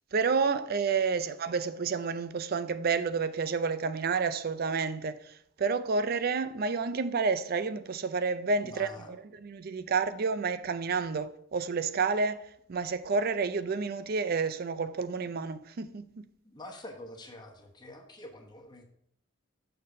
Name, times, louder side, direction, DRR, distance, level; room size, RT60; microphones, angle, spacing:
voice 1, 0.1-9.2 9.4-16.3, right 4 dB, 50° right, 0.5 m, -30 dB
voice 2, 8.6-9.1 16.4-18.8, left 1 dB, 20° left, 1.1 m, -46 dB
6.6 x 4.1 x 6.4 m
head